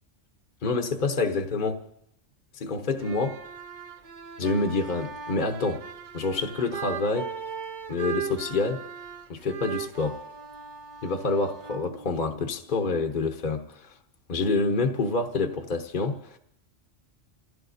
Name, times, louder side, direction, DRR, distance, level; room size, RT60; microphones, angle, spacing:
voice 1, 0.6-1.8 2.5-3.4 4.4-5.8 6.1-7.3 7.9-8.8 9.3-10.2 11.0-13.9 14.3-16.4, left 3 dB, 45° left, 1.0 m, -27 dB
sound 1, 2.9-12.7, right 7 dB, 45° right, 0.7 m, -38 dB
28.5 x 16.0 x 2.6 m
omnidirectional pair, 1.3 m